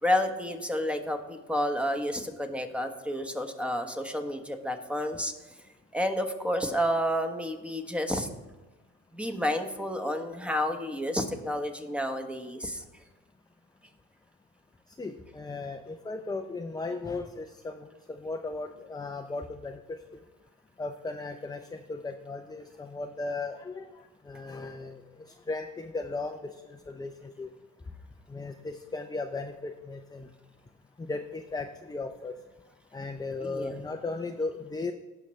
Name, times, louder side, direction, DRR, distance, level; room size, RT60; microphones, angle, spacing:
voice 1, 0.0-5.3 5.9-8.3 9.1-12.8 33.4-33.8, equal, 5° right, 6 dB, 1.1 m, -30 dB
voice 2, 15.0-19.8 20.8-23.9 24.3-25.0 25.5-26.4 26.7-27.5 28.3-30.3 31.1-32.3 32.9-34.9, left 3 dB, 15° left, 5 dB, 0.5 m, -36 dB
16.5 x 5.9 x 3.2 m, 1.2 s
cardioid pair, 90°, 30 cm